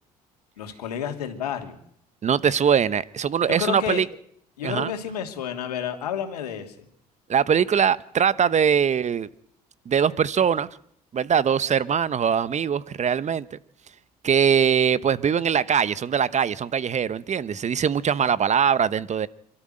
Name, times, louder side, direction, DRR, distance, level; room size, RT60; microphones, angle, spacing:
voice 1, 0.6-1.8 3.5-4.0 4.6-6.8, left 8 dB, 80° left, 2.8 m, -30 dB
voice 2, 2.2-4.1 4.6-4.9 7.3-9.3 9.9-10.7 11.1-13.6 14.2-19.3, right 7 dB, 35° right, 1.2 m, -22 dB
28.0 x 13.5 x 7.9 m
hypercardioid pair, 60°, 20 cm